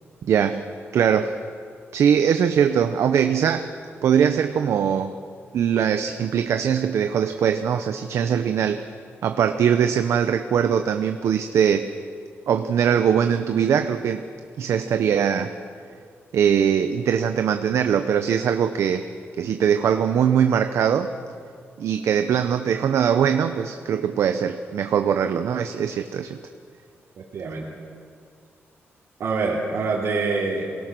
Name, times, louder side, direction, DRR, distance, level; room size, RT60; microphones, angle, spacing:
voice 1, 0.2-0.6 0.9-1.4 1.9-3.7 4.0-5.1 5.5-8.9 9.2-11.9 12.5-14.3 14.6-15.5 16.3-19.1 19.4-21.1 21.8-26.4, right 8 dB, 90° right, 8 dB, 0.8 m, -21 dB
voice 2, 27.2-27.6 29.2-30.6, right 4 dB, 70° right, -6 dB, 3.3 m, -25 dB
27.5 x 18.0 x 6.2 m, 2.4 s
wide cardioid pair, 155°, 5 cm